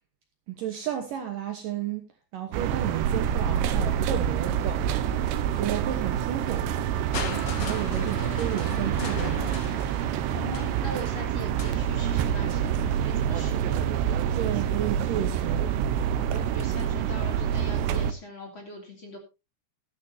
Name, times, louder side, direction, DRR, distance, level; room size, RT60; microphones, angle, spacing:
voice 1, 0.6-2.1 2.3-5.0 5.6-6.7 7.6-9.7 14.3-15.8, right 10 dB, 65° right, 2.4 m, -33 dB
sound 1, 2.5-18.1, right 9 dB, 80° right, 3.0 m, -27 dB
Crushing, 7.1-13.0 14.0-14.1, left 5 dB, 55° left, 1.7 m, -39 dB
voice 2, 10.3-14.0 16.2-19.2, left 1 dB, 30° left, 3.1 m, -41 dB
14.0 x 13.0 x 2.8 m
omnidirectional pair, 4.9 m